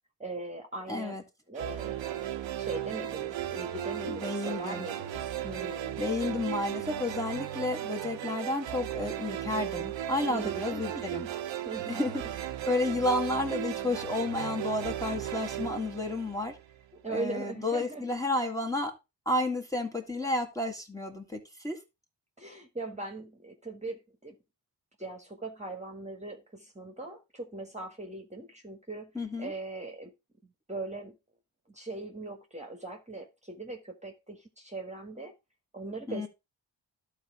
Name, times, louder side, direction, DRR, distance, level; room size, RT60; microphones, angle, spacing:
voice 1, 0.2-1.2 1.5-6.0 10.3-11.3 11.6-12.0 16.9-18.1 22.4-24.4 25.0-29.1 29.4-30.1 30.4-31.2 31.7-35.3 35.7-36.3, right 2 dB, 15° right, 1.6 m, -40 dB
voice 2, 0.9-1.2 4.1-4.9 6.0-11.2 11.9-12.4 12.7-16.6 17.1-18.9 19.2-21.8 29.1-29.5 36.1-36.3, left 2 dB, 5° left, 1.8 m, -31 dB
sound 1, 1.6-16.8, right 12 dB, 75° right, 0.9 m, -36 dB
12.0 x 4.2 x 3.6 m
cardioid pair, 65°, 45 cm